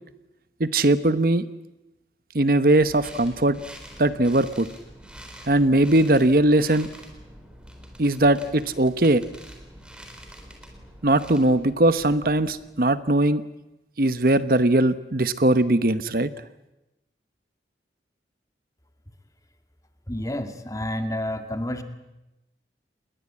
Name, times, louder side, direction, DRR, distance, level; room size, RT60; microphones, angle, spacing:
voice 1, 0.6-1.4 2.3-3.6 4.0-4.7 5.5-6.9 8.0-9.2 11.0-13.4 14.0-16.3, right 1 dB, 55° right, 13 dB, 1.0 m, -20 dB
sound 1, 2.8-13.0, equal, 5° right, 3.9 m, -46 dB
voice 2, 20.1-21.8, left 1 dB, 20° left, 7 dB, 2.0 m, -29 dB
29.5 x 21.0 x 8.6 m, 0.97 s
head